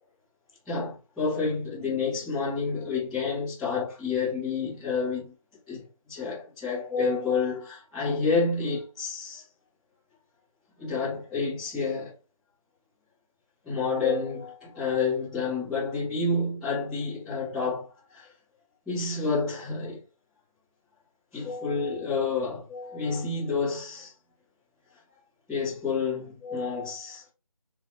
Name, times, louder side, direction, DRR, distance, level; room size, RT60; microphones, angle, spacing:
voice 1, 0.6-5.3 5.7-9.4 10.8-12.1 13.6-18.3 18.8-20.0 21.3-24.1 25.5-27.2, left 4 dB, ahead, 1.6 m, -29 dB
3.9 x 3.2 x 2.7 m
figure-of-eight pair, 170°, 18 cm